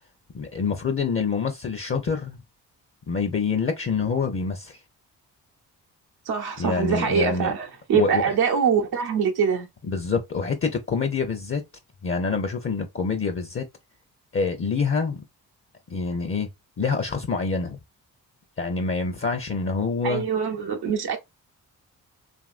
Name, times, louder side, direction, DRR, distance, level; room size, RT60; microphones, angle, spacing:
voice 1, 0.3-2.4 3.1-4.8 6.6-7.5 7.9-8.3 9.9-11.6 12.0-13.6 14.3-15.2 15.9-16.5 16.8-17.8 18.6-20.2, left 5 dB, 35° left, 0.7 m, -26 dB
voice 2, 6.3-9.7 20.0-21.2, right 6 dB, 70° right, 0.8 m, -24 dB
2.9 x 2.6 x 2.4 m
supercardioid pair, 55°, 40 cm